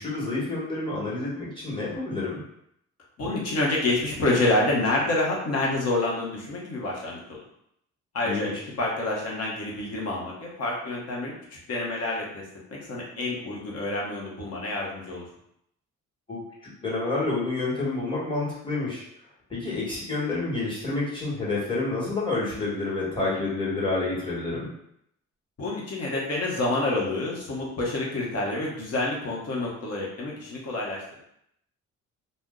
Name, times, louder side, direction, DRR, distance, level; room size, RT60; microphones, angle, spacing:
voice 1, 0.0-2.4 8.2-8.5 16.3-19.0 19.5-24.7, left 3 dB, 15° left, -7 dB, 1.4 m, -29 dB
voice 2, 3.2-7.4 8.1-8.5 8.8-12.4 12.7-15.3 25.6-31.0, left 2 dB, 55° left, -3 dB, 1.0 m, -28 dB
2.6 x 2.1 x 3.6 m, 0.75 s
cardioid pair, 90°, 30 cm